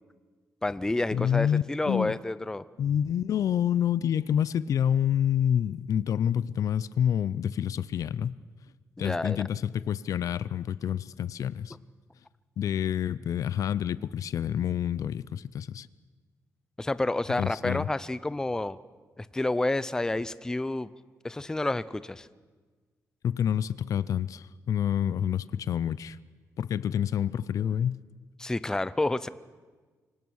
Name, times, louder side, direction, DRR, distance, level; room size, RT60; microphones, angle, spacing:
voice 1, 0.6-2.6 9.0-9.4 16.8-18.8 19.2-20.9 21.2-22.3 28.4-29.3, left 2 dB, 10° left, 16 dB, 0.5 m, -29 dB
voice 2, 1.1-2.1 2.8-8.4 9.0-11.7 12.6-15.9 17.4-17.9 23.2-26.2 26.6-28.0, left 9 dB, 70° left, 18 dB, 0.5 m, -28 dB
24.5 x 18.0 x 6.4 m, 1.4 s
wide cardioid pair, 140°, 6 cm